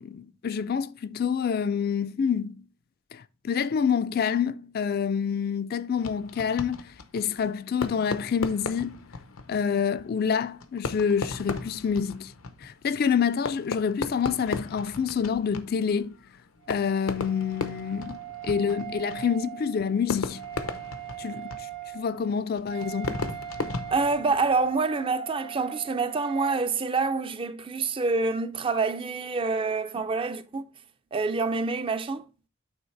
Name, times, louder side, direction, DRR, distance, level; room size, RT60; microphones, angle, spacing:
voice 1, 0.0-2.6 3.1-6.9 7.1-9.0 9.5-12.3 12.6-16.2 16.7-20.4 21.2-21.7 21.9-23.2, left 7 dB, 45° left, 0.3 m, -27 dB
Fireworks, 6.0-24.8, left 3 dB, 90° left, 0.8 m, -37 dB
Wind instrument woodwind instrument, 16.6-26.6, right 11 dB, 85° right, 1.8 m, -41 dB
voice 2, 23.9-30.6 31.1-32.3, right 4 dB, 25° right, 0.4 m, -27 dB
8.8 x 3.8 x 3.2 m
head